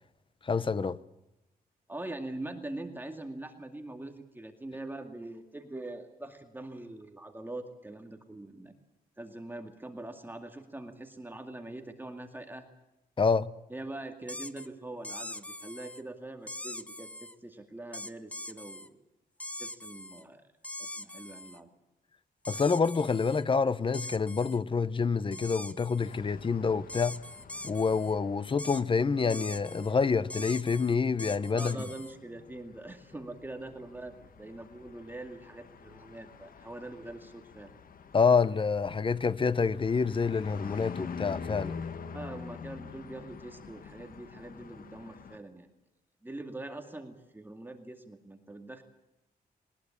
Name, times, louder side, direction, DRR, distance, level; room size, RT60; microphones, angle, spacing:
voice 1, 0.4-1.0 13.2-13.5 22.5-27.2 27.6-31.8 38.1-41.7, left 5 dB, 35° left, 0.9 m, -27 dB
voice 2, 1.9-8.7 9.2-12.7 13.7-19.0 19.6-20.4 20.8-21.7 31.5-37.7 42.1-45.7 46.2-48.8, right 2 dB, 15° right, 2.2 m, -43 dB
sound 1, 14.3-14.7 15.0-16.0 16.5-17.3 17.9-18.9 19.4-20.2 20.6-21.6 22.4-23.4 23.9-24.6 25.3-26.2 26.9-28.1 28.6-28.8 29.3-29.9 30.3-32.1, left 1 dB, 10° left, 1.0 m, -42 dB
sound 2, 26.0-45.4, left 5 dB, 65° left, 1.6 m, -46 dB
21.0 x 20.0 x 8.7 m
wide cardioid pair, 115°, 16 cm